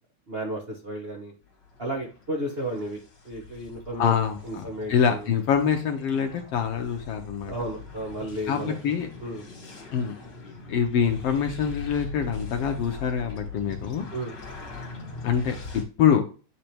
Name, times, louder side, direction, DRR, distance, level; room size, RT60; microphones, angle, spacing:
voice 1, 0.3-1.3 1.8-3.0 3.2-4.1 4.4-5.3 7.5-8.7 9.2-9.4 14.1-14.3, right 1 dB, 70° right, -2 dB, 0.5 m, -33 dB
sound 1, 1.5-15.8, left 4 dB, 40° left, 2.3 m, -41 dB
voice 2, 4.0-7.5 8.5-9.1 9.9-10.1 10.7-14.1 15.2-16.3, left 7 dB, 70° left, 4 dB, 1.5 m, -25 dB
8.8 x 3.3 x 4.3 m, 0.35 s
omnidirectional pair, 3.4 m